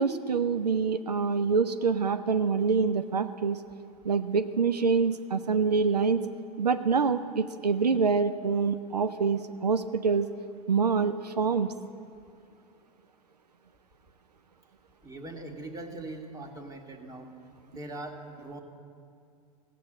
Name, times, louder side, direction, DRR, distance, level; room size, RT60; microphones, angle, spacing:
voice 1, 0.0-3.6 4.0-6.2 6.6-10.3 10.7-11.7, right 5 dB, 90° right, 10 dB, 0.5 m, -26 dB
voice 2, 15.0-17.3 17.7-18.6, right 2 dB, 20° right, 3 dB, 1.6 m, -41 dB
15.5 x 7.6 x 7.6 m, 2.4 s
figure-of-eight pair, 90°, 20 cm